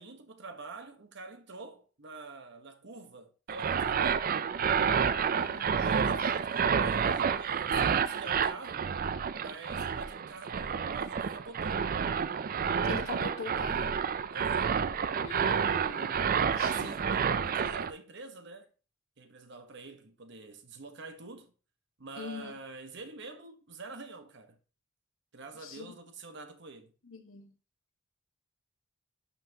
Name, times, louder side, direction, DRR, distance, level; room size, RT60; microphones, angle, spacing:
voice 1, 0.0-4.3 5.8-8.9 9.4-11.9 14.3-14.9 16.4-17.1 17.4-18.7 19.2-21.5 22.0-24.6 25.3-26.9, right 3 dB, 60° right, 1.1 m, -46 dB
sound 1, 3.5-17.9, right 7 dB, 45° right, 0.4 m, -29 dB
voice 2, 5.3-6.3 12.9-14.0 15.2-17.0 22.1-22.6 25.6-25.9 27.0-27.5, left 4 dB, 75° left, 1.4 m, -43 dB
11.0 x 5.7 x 2.8 m
head